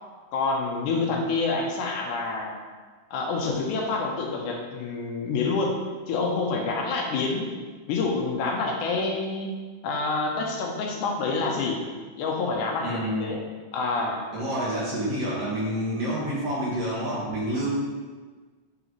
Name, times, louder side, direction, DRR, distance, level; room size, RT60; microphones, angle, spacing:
voice 1, 0.3-2.6 3.1-5.8 6.1-7.6 7.9-9.5 9.8-11.8 12.2-13.4 13.7-14.2, left 3 dB, 80° left, 1 dB, 2.2 m, -27 dB
voice 2, 12.8-13.3 14.3-17.7, equal, 60° right, -7 dB, 2.1 m, -28 dB
7.9 x 4.0 x 3.0 m, 1.4 s
omnidirectional pair, 3.6 m